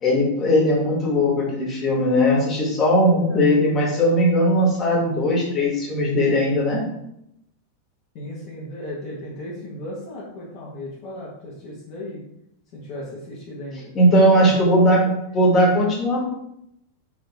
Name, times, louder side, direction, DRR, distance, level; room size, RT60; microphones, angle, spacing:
voice 1, 0.0-6.8 13.9-15.0 15.3-16.2, equal, 25° left, -4 dB, 1.7 m, -18 dB
voice 2, 3.0-3.6 3.9-4.1 8.1-12.3 12.7-13.9 14.4-14.6 15.0-15.1, left 1 dB, 45° left, -7 dB, 1.2 m, -36 dB
4.7 x 3.1 x 3.5 m, 0.80 s
figure-of-eight pair, 90°, 0 cm